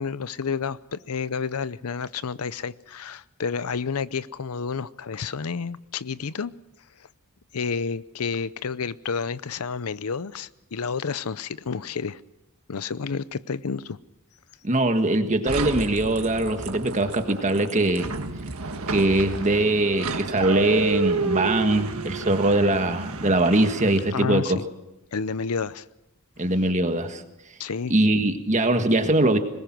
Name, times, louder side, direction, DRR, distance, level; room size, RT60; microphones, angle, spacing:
voice 1, 0.0-6.5 7.0-7.1 7.5-12.2 12.7-14.0 24.1-24.7 25.1-25.8 27.6-27.9, left 5 dB, 80° left, 17 dB, 0.6 m, -30 dB
voice 2, 14.6-18.1 18.9-24.6 26.4-27.2 27.9-29.4, right 2 dB, 35° right, 7 dB, 1.6 m, -22 dB
sound 1, 15.5-24.2, right 4 dB, 75° right, 1.6 m, -31 dB
22.5 x 20.5 x 6.1 m, 0.93 s
head